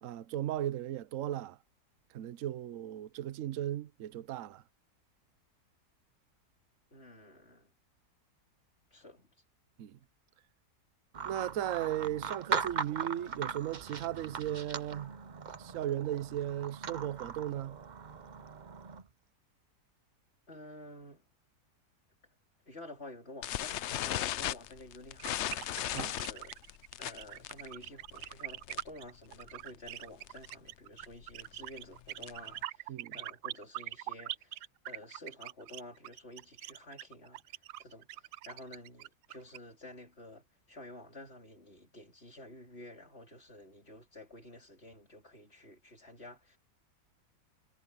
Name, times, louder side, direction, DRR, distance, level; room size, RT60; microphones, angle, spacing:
voice 1, 0.0-1.6 2.1-4.6 9.8-10.0 11.2-15.2 15.6-17.8 25.9-26.1 32.9-33.2, right 12 dB, 60° right, 1.1 m, -36 dB
voice 2, 6.9-7.7 8.9-9.3 20.5-21.2 22.7-25.4 25.9-26.7 27.0-46.6, left 1 dB, 40° left, 4.6 m, -51 dB
sound 1, 11.1-19.0, right 5 dB, 40° right, 0.7 m, -39 dB
sound 2, 23.4-29.0 29.3-29.6 29.9-30.0 30.3-30.5 31.0-32.6, left 13 dB, 75° left, 0.6 m, -37 dB
sound 3, 25.2-39.6, right 15 dB, 85° right, 1.2 m, -43 dB
omnidirectional pair, 1.7 m